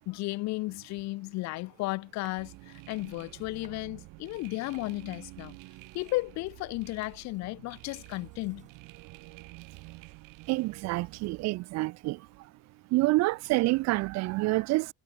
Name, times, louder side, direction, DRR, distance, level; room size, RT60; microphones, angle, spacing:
voice 1, 0.1-5.6 5.9-8.7, left 21 dB, 55° left, 0.5 m, -34 dB
sound 1, 1.2-2.6 3.0-3.9 4.2-8.9, right 5 dB, 20° right, 6.8 m, -64 dB
sound 2, 2.4-11.5, right 24 dB, 75° right, 2.6 m, -50 dB
voice 2, 10.5-12.2 12.9-14.9, right 21 dB, 55° right, 0.5 m, -27 dB
cardioid pair, 155°, 32 cm